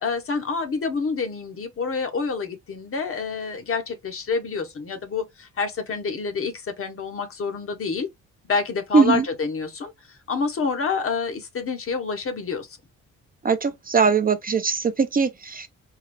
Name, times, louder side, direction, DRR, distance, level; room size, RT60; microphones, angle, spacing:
voice 1, 0.0-8.1 8.5-12.8, left 5 dB, 45° left, 1.0 m, -28 dB
voice 2, 8.9-9.2 13.4-15.7, right 5 dB, 30° right, 0.5 m, -20 dB
3.8 x 2.4 x 3.0 m
cardioid pair, 90°, 30 cm